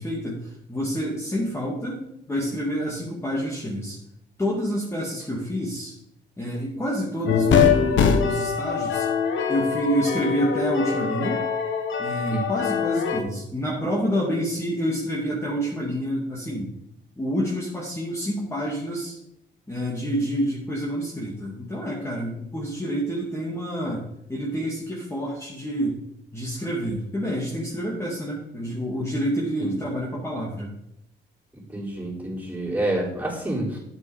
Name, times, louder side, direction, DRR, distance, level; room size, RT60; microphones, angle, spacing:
voice 1, 0.0-4.0 4.4-5.9 6.4-9.1 9.5-11.5 12.0-16.7 17.2-19.2 19.7-26.0 26.3-30.7, equal, 15° left, -4 dB, 2.3 m, -28 dB
sound 1, 7.3-13.2, left 6 dB, 70° left, 1.4 m, -23 dB
voice 2, 31.7-33.8, right 1 dB, 10° right, -5 dB, 4.2 m, -28 dB
9.1 x 8.0 x 5.0 m, 0.82 s
cardioid pair, 90°, 20 cm